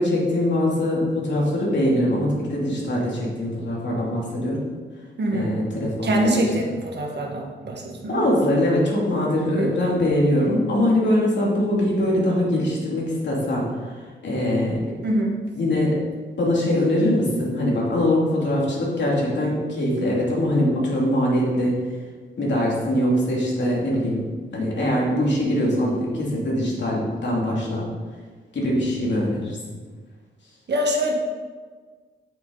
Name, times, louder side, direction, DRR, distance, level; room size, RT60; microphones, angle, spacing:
voice 1, 0.0-4.6 5.3-6.4 8.1-14.8 15.6-16.0 16.4-21.7 22.4-24.3 24.5-27.9 28.5-29.6, left 1 dB, 65° left, -4 dB, 2.9 m, -22 dB
voice 2, 5.2-5.6 6.0-8.3 9.4-9.8 15.0-15.4 30.7-31.1, right 1 dB, 60° right, 0 dB, 1.7 m, -24 dB
9.1 x 8.8 x 4.1 m, 1.5 s
wide cardioid pair, 150°, 20 cm